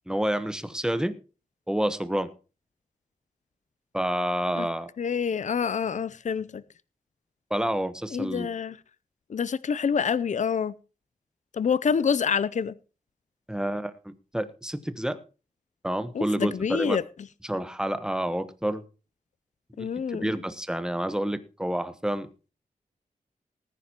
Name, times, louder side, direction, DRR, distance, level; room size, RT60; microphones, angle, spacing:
voice 1, 0.1-1.1 1.7-2.3 3.9-4.9 7.5-8.5 13.5-15.2 15.8-17.0 17.5-18.8 19.8-22.3, right 1 dB, 5° right, 1.0 m, -29 dB
voice 2, 5.0-6.6 8.1-8.8 9.3-10.7 11.5-12.7 16.1-17.0 19.8-20.3, left 6 dB, 50° left, 0.5 m, -27 dB
19.0 x 9.8 x 2.9 m
wide cardioid pair, 90°, 15 cm